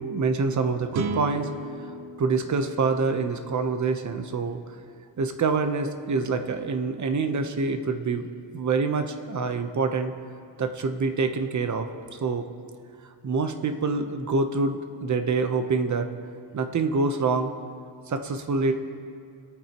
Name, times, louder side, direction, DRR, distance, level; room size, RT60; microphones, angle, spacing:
voice 1, 0.0-1.5 2.2-4.6 5.2-8.3 8.5-10.1 10.6-11.9 12.2-12.5 13.2-16.1 16.5-17.5 18.1-18.7, right 4 dB, 35° right, 7 dB, 1.0 m, -26 dB
sound 1, 0.9-4.2, right 3 dB, 65° right, 1.0 m, -36 dB
23.5 x 9.2 x 3.0 m, 2.4 s
cardioid pair, 120°, 49 cm